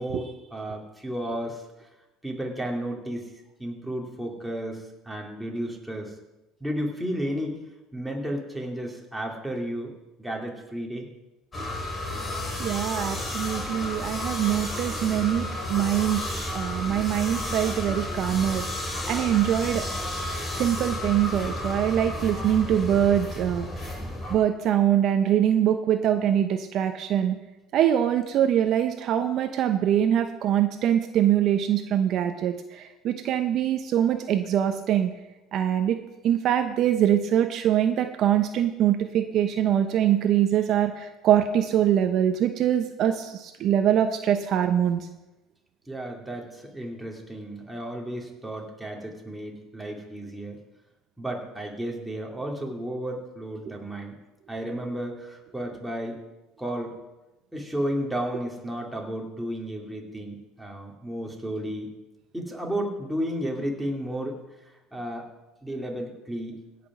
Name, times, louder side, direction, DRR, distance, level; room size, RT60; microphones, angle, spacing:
voice 1, 0.0-1.6 2.2-3.3 3.6-6.1 6.6-7.6 7.9-9.9 10.2-11.1 45.9-50.6 51.2-54.1 54.5-56.2 56.6-57.0 57.5-61.9 62.3-64.4 64.9-65.3 65.6-66.6, equal, ahead, -1 dB, 2.5 m, -33 dB
sound 1, 11.5-24.4, left 1 dB, 20° left, 3.5 m, -32 dB
voice 2, 12.6-16.2 16.5-18.6 19.1-19.8 20.6-23.7 24.3-27.4 27.7-35.1 35.5-36.0 36.2-45.1, right 10 dB, 50° right, 7 dB, 0.8 m, -23 dB
16.5 x 6.0 x 6.0 m, 1.0 s
cardioid pair, 120°, 0 cm